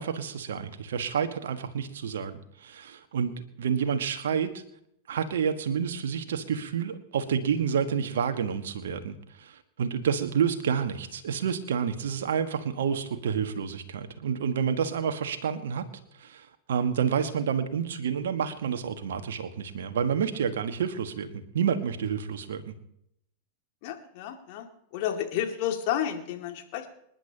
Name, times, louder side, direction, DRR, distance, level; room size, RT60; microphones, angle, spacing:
voice 1, 0.0-4.6 5.1-15.9 16.2-22.8, right 7 dB, 60° right, 8 dB, 1.5 m, -29 dB
voice 2, 23.8-24.7 24.9-26.9, left 10 dB, 45° left, 4 dB, 2.3 m, -31 dB
27.5 x 10.5 x 2.9 m, 0.75 s
figure-of-eight pair, 90°, 0 cm